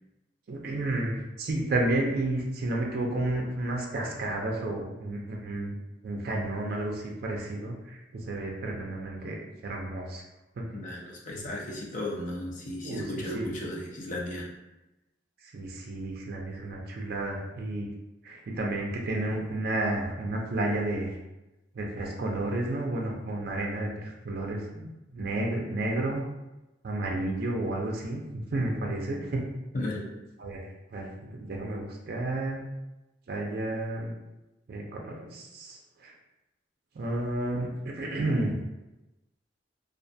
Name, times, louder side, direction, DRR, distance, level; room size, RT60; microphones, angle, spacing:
voice 1, 0.5-5.7 6.0-10.2 10.6-10.7 11.3-11.4 12.8-13.0 13.3-13.5 15.4-17.9 18.2-21.2 21.7-26.2 26.8-29.4 30.4-30.6 30.9-32.7 33.3-34.1 34.7-36.1 36.9-38.6, right 2 dB, 55° right, 0 dB, 0.4 m, -31 dB
voice 2, 10.7-14.5 29.7-30.1, left 1 dB, 45° left, -2 dB, 0.5 m, -35 dB
2.4 x 2.2 x 2.6 m, 0.99 s
head